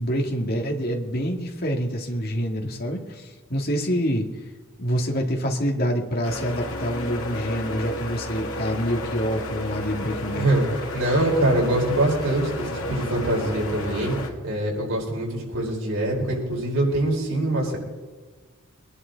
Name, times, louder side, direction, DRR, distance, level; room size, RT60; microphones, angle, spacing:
voice 1, 0.0-4.3 4.8-10.5, equal, 45° left, 1 dB, 2.2 m, -26 dB
sound 1, 6.2-14.3, left 1 dB, 80° left, 2.2 m, -32 dB
voice 2, 10.3-10.6 10.9-14.2 14.4-17.8, right 1 dB, 85° right, -3 dB, 5.4 m, -24 dB
23.0 x 11.0 x 4.1 m, 1.4 s
head